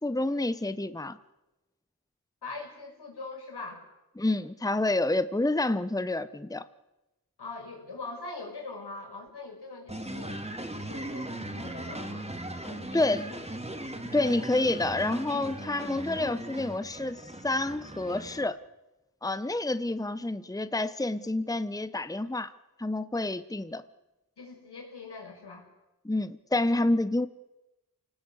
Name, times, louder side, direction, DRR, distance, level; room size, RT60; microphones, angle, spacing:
voice 1, 0.0-1.2 4.2-6.6 12.9-13.2 14.1-18.6 19.2-22.5 22.8-23.8 26.0-27.3, left 2 dB, 10° left, 13 dB, 1.1 m, -28 dB
voice 2, 2.4-3.8 7.4-10.4 10.7-12.3 12.6-13.4 24.4-25.7, left 3 dB, 85° left, 2 dB, 6.4 m, -42 dB
sound 1, 9.9-18.5, right 1 dB, 15° right, 4.1 m, -38 dB
27.5 x 19.0 x 8.4 m, 1.0 s
cardioid pair, 45°, 39 cm